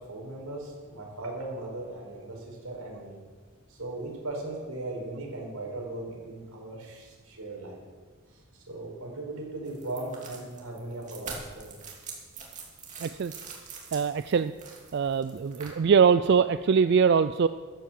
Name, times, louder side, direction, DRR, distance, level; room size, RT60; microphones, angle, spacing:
voice 1, 0.0-3.2 3.7-7.8 8.7-11.7, right 2 dB, 85° right, -1 dB, 4.9 m, -38 dB
sound 1, 9.7-15.7, right 5 dB, 35° right, 2.8 m, -44 dB
voice 2, 13.0-13.3 13.9-14.5 14.9-17.5, right 6 dB, 50° right, 12 dB, 0.3 m, -22 dB
13.0 x 11.5 x 7.5 m, 1.5 s
head